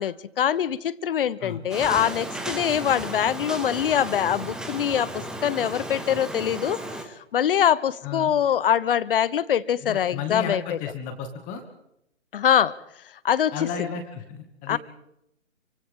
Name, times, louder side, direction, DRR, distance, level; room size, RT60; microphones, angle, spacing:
voice 1, 0.0-10.8 12.3-14.0 14.7-14.8, left 9 dB, 45° left, 19 dB, 1.0 m, -24 dB
sound 1, 1.7-7.1, right 1 dB, ahead, 1.3 m, -34 dB
voice 2, 9.8-11.6 13.5-14.8, left 6 dB, 20° left, 6 dB, 2.2 m, -33 dB
30.0 x 24.5 x 3.7 m, 0.81 s
hypercardioid pair, 145°, 38 cm